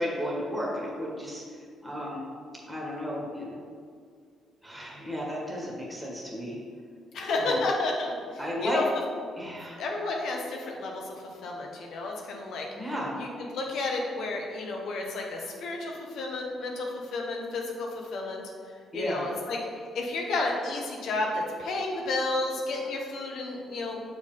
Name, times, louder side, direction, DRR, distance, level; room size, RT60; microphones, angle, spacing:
voice 1, 0.0-1.4 1.8-2.2 2.7-3.6 4.6-6.6 7.4-7.6 8.4-8.8 9.4-9.8 12.7-13.1 18.9-19.3, equal, 5° right, -4 dB, 1.6 m, -33 dB
voice 2, 7.1-8.8 9.8-11.2 11.4-12.9 13.2-18.4 18.9-19.6 19.9-24.0, left 2 dB, 75° left, 0 dB, 1.1 m, -31 dB
6.5 x 4.7 x 3.8 m, 2.2 s
cardioid pair, 90°, 0 cm